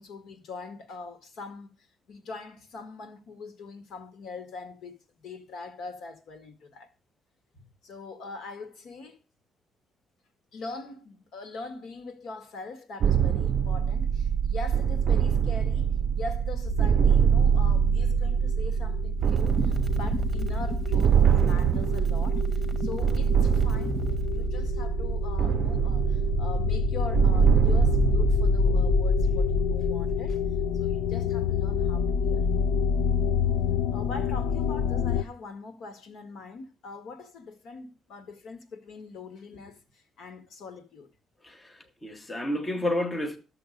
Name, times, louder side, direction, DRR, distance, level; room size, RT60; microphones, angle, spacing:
voice 1, 0.0-1.7 2.1-6.9 7.8-9.2 10.5-22.4 22.8-24.0 24.3-30.4 30.7-32.6 33.9-41.1, left 3 dB, 70° left, 1.8 m, -42 dB
sound 1, 13.0-30.7, right 8 dB, 55° right, 0.4 m, -24 dB
sound 2, 16.7-35.2, left 7 dB, 90° left, 0.5 m, -28 dB
sound 3, 19.3-24.2, right 4 dB, 20° right, 1.2 m, -37 dB
voice 2, 41.4-43.4, left 1 dB, 15° left, 1.0 m, -30 dB
13.0 x 6.9 x 5.2 m
cardioid pair, 180°, 0 cm